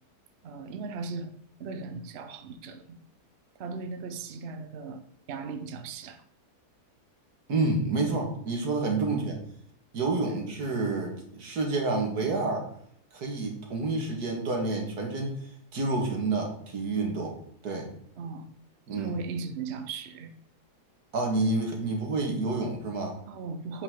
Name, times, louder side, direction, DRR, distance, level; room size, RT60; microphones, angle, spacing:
voice 1, 0.4-1.3 1.6-3.0 3.6-6.2 9.1-9.2 10.2-10.3 18.2-18.5 18.9-20.3 23.3-23.8, right 4 dB, 55° right, 8 dB, 0.8 m, -37 dB
voice 2, 7.5-9.4 9.9-12.7 13.1-17.3 17.6-17.9 18.9-19.1 21.1-23.1, right 3 dB, 90° right, 1 dB, 2.2 m, -29 dB
8.2 x 5.4 x 3.7 m, 0.67 s
omnidirectional pair, 1.6 m